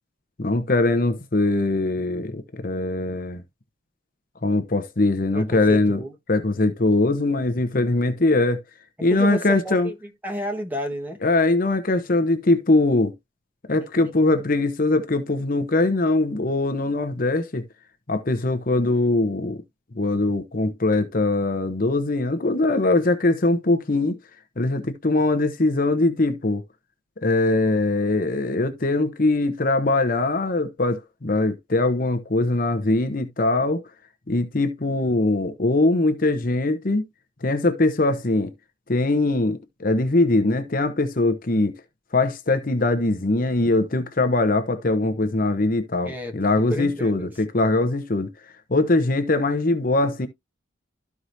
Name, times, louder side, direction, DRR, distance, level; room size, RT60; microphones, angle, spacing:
voice 1, 0.4-3.4 4.4-6.0 6.3-8.6 9.0-9.9 11.2-13.1 13.7-17.6 18.1-19.6 19.9-24.2 24.6-26.6 27.2-33.8 34.3-37.1 37.4-38.5 38.9-41.7 42.1-48.3 48.7-50.3, left 2 dB, 45° left, 0.8 m, -21 dB
voice 2, 5.3-6.1 9.1-11.2 46.0-46.3 46.7-47.3, equal, 10° right, 1.4 m, -31 dB
13.0 x 4.8 x 2.7 m
head